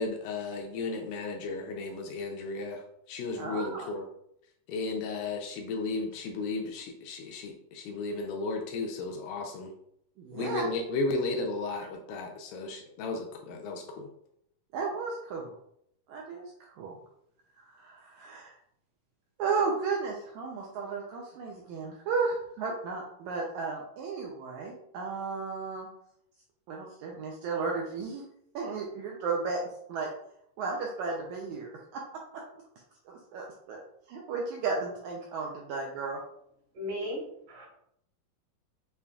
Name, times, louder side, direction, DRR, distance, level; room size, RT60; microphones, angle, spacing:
voice 1, 0.0-2.8 3.1-4.1 4.7-9.7 10.3-14.1, left 3 dB, 80° left, 2 dB, 2.0 m, -34 dB
voice 2, 3.4-3.9 10.2-10.7 14.7-15.5 16.1-17.0 17.6-18.5 19.4-25.9 26.7-28.2 28.5-29.6 29.9-30.1 30.6-32.4 33.1-33.8 34.1-36.2, right 4 dB, 85° right, 0 dB, 1.7 m, -34 dB
voice 3, 36.7-37.7, equal, 70° right, -3 dB, 3.3 m, -36 dB
6.9 x 2.8 x 2.3 m, 0.73 s
omnidirectional pair, 4.0 m